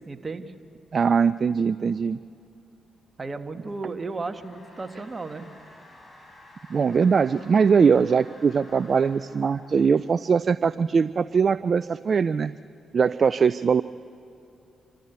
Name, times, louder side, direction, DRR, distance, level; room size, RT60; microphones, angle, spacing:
voice 1, 0.1-0.5 3.2-5.5, right 3 dB, 35° right, 7 dB, 1.5 m, -34 dB
voice 2, 0.9-2.2 6.7-12.5 12.9-13.8, right 6 dB, 50° right, 16 dB, 0.4 m, -21 dB
sound 1, 3.3-10.3, left 1 dB, 25° left, 4.8 m, -52 dB
27.0 x 14.0 x 8.1 m, 2.8 s
supercardioid pair, 50°, 0 cm